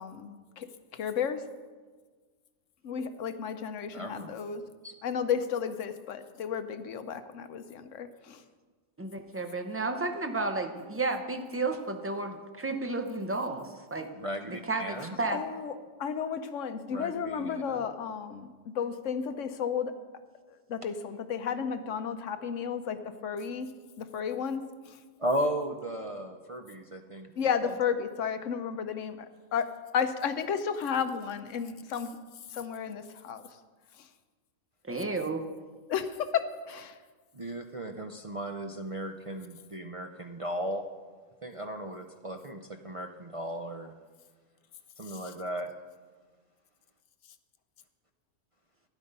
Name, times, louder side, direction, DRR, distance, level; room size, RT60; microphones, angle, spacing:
voice 1, 0.0-1.5 2.8-4.6 5.0-8.4 15.0-20.0 20.5-25.0 27.4-32.2 32.5-33.6 33.9-34.1 35.9-37.0 45.0-45.3, left 7 dB, 65° left, 10 dB, 1.0 m, -33 dB
voice 2, 3.9-4.3 4.8-4.9 14.1-15.1 16.9-17.8 25.2-27.3 27.6-27.7 37.3-40.9 41.4-43.9 45.0-45.7, right 1 dB, 50° right, 5 dB, 0.3 m, -36 dB
voice 3, 9.0-14.1 14.5-15.4 34.8-35.4, right 3 dB, 15° right, 5 dB, 0.6 m, -32 dB
12.5 x 10.0 x 5.4 m, 1.4 s
omnidirectional pair, 1.4 m